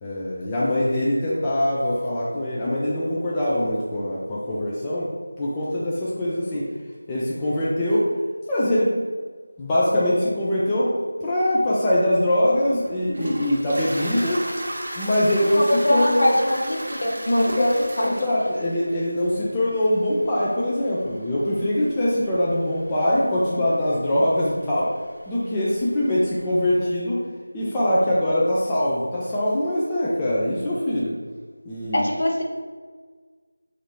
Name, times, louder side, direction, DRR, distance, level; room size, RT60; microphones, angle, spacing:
voice 1, 0.0-5.1 5.4-6.7 7.1-8.1 8.5-8.9 9.6-10.9 11.2-14.4 15.0-16.4 17.4-17.7 18.0-24.9 25.3-27.2 27.5-31.1 31.7-32.1, left 1 dB, 10° left, -8 dB, 0.3 m, -23 dB
Toilet flush, 12.1-26.8, right 1 dB, 40° right, 0.7 m, -37 dB
voice 2, 15.5-16.6 16.9-18.2 31.9-32.4, left 1 dB, 55° left, 0 dB, 0.6 m, -22 dB
3.2 x 2.5 x 4.0 m, 1.5 s
figure-of-eight pair, 175°, 0 cm